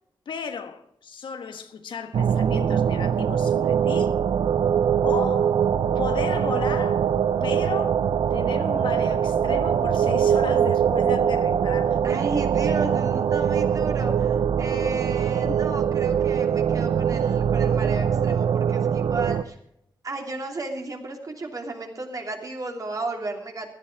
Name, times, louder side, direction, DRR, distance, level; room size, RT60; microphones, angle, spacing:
voice 1, 0.3-4.1 5.0-5.7 5.9-7.1 7.4-12.2 14.6-14.7 15.4-15.6, left 6 dB, 85° left, 1.3 m, -34 dB
sound 1, 2.1-19.4, right 8 dB, 85° right, 0.5 m, -22 dB
voice 2, 12.0-19.6 20.0-23.7, right 2 dB, 45° right, 3.0 m, -33 dB
16.0 x 11.5 x 4.6 m
cardioid pair, 80°, 8 cm